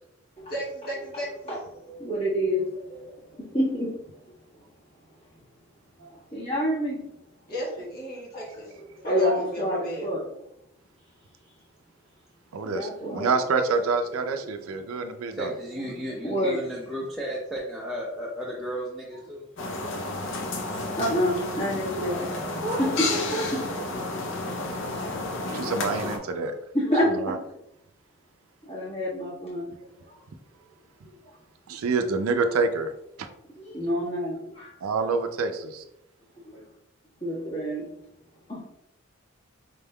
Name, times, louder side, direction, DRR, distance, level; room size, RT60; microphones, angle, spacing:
voice 1, 0.5-1.5 7.5-8.7 9.0-10.1 22.6-23.9, right 1 dB, 45° left, -5 dB, 1.4 m, -33 dB
voice 2, 1.5-4.3 4.6-4.7 6.0-7.0 8.3-8.4 8.8-10.2 12.6-13.4 14.4-14.5 16.0-16.6 20.8-22.2 22.8-23.6 24.6-25.5 26.7-27.3 28.6-29.7 30.0-30.2 31.2-31.3 33.5-34.7 36.3-36.6 37.2-37.9 38.5-38.6, equal, 30° left, -7 dB, 1.5 m, -29 dB
voice 3, 12.5-15.5 25.5-26.5 27.2-27.3 31.7-32.9 34.8-35.8, right 4 dB, 90° right, 7 dB, 0.4 m, -27 dB
voice 4, 15.3-19.5 22.0-22.5, equal, ahead, -5 dB, 0.5 m, -34 dB
sound 1, 19.6-26.2, left 2 dB, 60° left, 0.6 m, -31 dB
5.1 x 3.5 x 2.2 m, 0.84 s
head